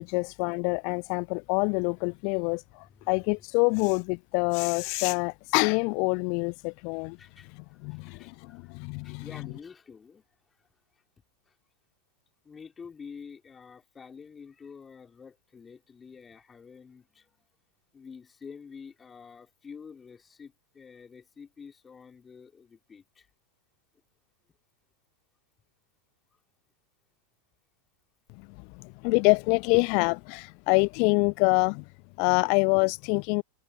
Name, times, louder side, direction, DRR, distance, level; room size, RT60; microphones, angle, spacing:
voice 1, 0.0-2.6 3.1-7.2 7.8-9.2 28.8-31.8 32.2-33.4, left 38 dB, 45° left, 0.5 m, -26 dB
voice 2, 7.2-8.8 9.0-10.3 11.5-11.6 12.4-17.4 17.9-23.3, left 6 dB, 15° left, 5.0 m, -48 dB
figure-of-eight pair, 90°, 0 cm